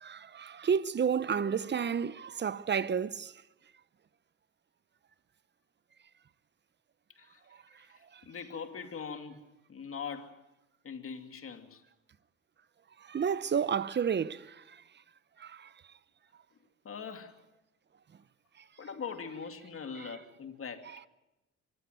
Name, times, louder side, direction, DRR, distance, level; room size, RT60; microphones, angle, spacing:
voice 1, 0.0-3.3 13.1-14.4, right 7 dB, 35° right, 0.8 m, -30 dB
voice 2, 7.8-9.4 9.7-10.4 10.8-11.8 16.8-17.4 18.8-20.9, left 6 dB, 45° left, 2.5 m, -42 dB
24.0 x 14.5 x 9.3 m
cardioid pair, 90°, 30 cm